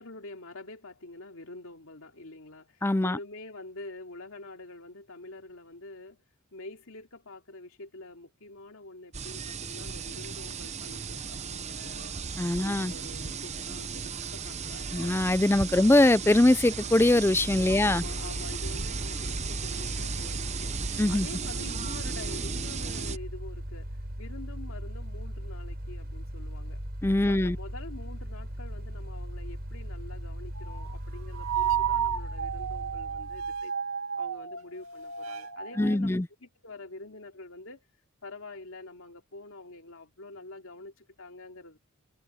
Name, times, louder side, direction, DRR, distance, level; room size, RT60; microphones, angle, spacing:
voice 1, 0.0-6.2 6.5-12.2 12.6-15.2 15.7-15.9 17.7-20.8 21.1-26.8 27.2-33.7 34.2-37.8 38.2-41.8, left 2 dB, 75° left, 2.7 m, -46 dB
voice 2, 2.8-3.2 12.4-12.9 14.9-18.0 21.0-21.3 27.0-27.6 35.8-36.3, left 1 dB, 10° left, 0.4 m, -22 dB
sound 1, 9.1-23.2, right 5 dB, 30° right, 0.8 m, -36 dB
Mechanical fan, 16.8-33.6, equal, 45° right, 5.8 m, -38 dB
sound 2, 30.6-30.9 31.3-35.9, right 9 dB, 85° right, 2.4 m, -32 dB
head